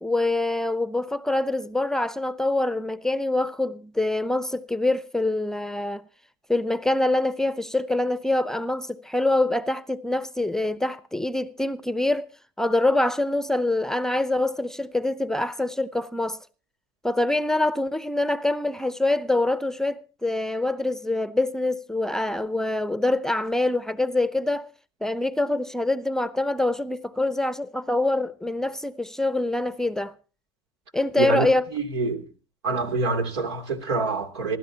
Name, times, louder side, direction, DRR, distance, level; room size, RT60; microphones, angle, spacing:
voice 1, 0.0-6.0 6.5-12.3 12.6-16.4 17.0-24.7 25.0-30.1 30.9-31.7, left 2 dB, 5° left, 0.6 m, -25 dB
voice 2, 31.2-32.3 32.6-34.6, right 3 dB, 90° right, 2.8 m, -26 dB
26.5 x 12.5 x 2.8 m
supercardioid pair, 105°, 13 cm